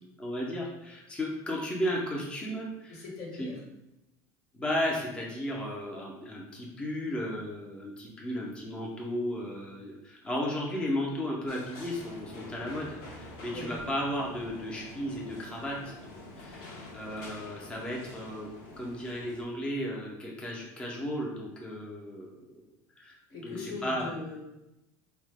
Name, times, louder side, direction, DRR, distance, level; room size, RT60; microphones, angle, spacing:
voice 1, 0.2-3.0 3.4-3.5 4.5-16.0 16.4-18.5 18.8-22.3 23.0-23.2 23.4-24.1, equal, 10° left, -3 dB, 0.5 m, -34 dB
voice 2, 2.9-3.6 13.5-13.7 23.3-24.4, left 3 dB, 80° left, -2 dB, 1.1 m, -40 dB
sound 1, 11.5-19.4, left 2 dB, 65° left, 0.6 m, -47 dB
2.7 x 2.0 x 3.3 m, 0.92 s
cardioid pair, 145°, 9 cm